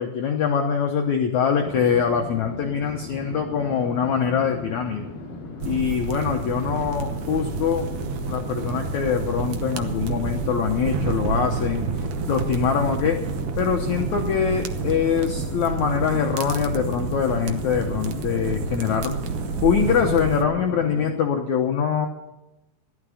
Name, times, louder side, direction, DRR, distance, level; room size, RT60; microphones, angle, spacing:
voice 1, 0.0-5.1 5.6-7.9 8.3-11.9 12.3-13.2 13.6-19.3 19.6-22.1, left 7 dB, 80° left, 3 dB, 1.6 m, -23 dB
sound 1, 1.6-21.1, left 2 dB, 55° left, 3.5 m, -37 dB
sound 2, 5.6-20.4, right 6 dB, 80° right, 1.8 m, -29 dB
16.0 x 12.5 x 5.0 m, 0.94 s
omnidirectional pair, 4.9 m